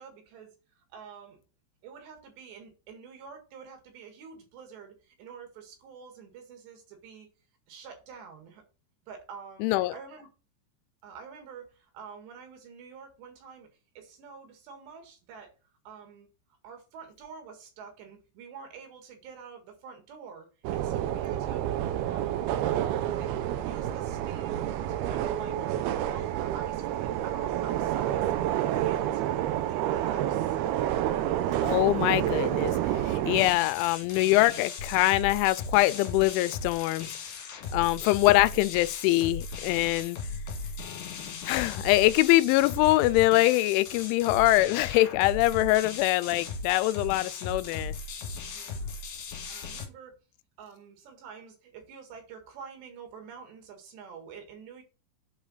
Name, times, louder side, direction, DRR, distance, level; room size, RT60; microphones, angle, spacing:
voice 1, 0.0-1.4 1.8-7.3 7.7-8.6 9.1-10.3 11.0-13.7 14.0-15.5 15.9-16.3 16.6-21.6 22.0-22.9 23.2-25.6 26.0-30.6 37.8-37.9 45.4-45.8 48.5-48.9 49.5-50.2 50.6-54.8, right 6 dB, 70° right, 4.0 m, -47 dB
voice 2, 9.6-9.9 31.6-37.2 37.7-40.2 41.4-48.0, left 18 dB, 90° left, 3.0 m, -24 dB
sound 1, 20.6-33.5, right 12 dB, 90° right, 2.2 m, -29 dB
sound 2, 33.4-49.9, left 4 dB, 60° left, 3.1 m, -38 dB
9.1 x 5.0 x 5.4 m
omnidirectional pair, 5.4 m